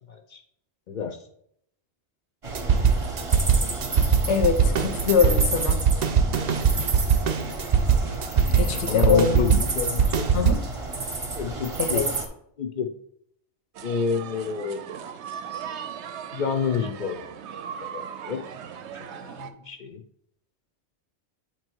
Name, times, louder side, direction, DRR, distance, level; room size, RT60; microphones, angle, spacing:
voice 1, 0.1-0.4 0.9-1.2 7.3-7.4 8.9-10.3 11.4-12.0 12.6-12.9 13.8-14.9 16.3-17.4 17.8-18.4 18.9-20.0, left 7 dB, 55° left, 6 dB, 0.6 m, -29 dB
sound 1, 2.4-12.3, right 3 dB, 35° right, 0.8 m, -32 dB
sound 2, 2.5-10.5, right 6 dB, 55° right, 0.5 m, -21 dB
voice 2, 4.3-5.8 8.5-9.6 10.3-10.6 11.8-12.1, left 5 dB, 85° left, 7 dB, 1.1 m, -23 dB
sound 3, 13.7-19.5, right 8 dB, 90° right, 0.9 m, -38 dB
8.4 x 3.0 x 4.5 m, 0.71 s
omnidirectional pair, 1.1 m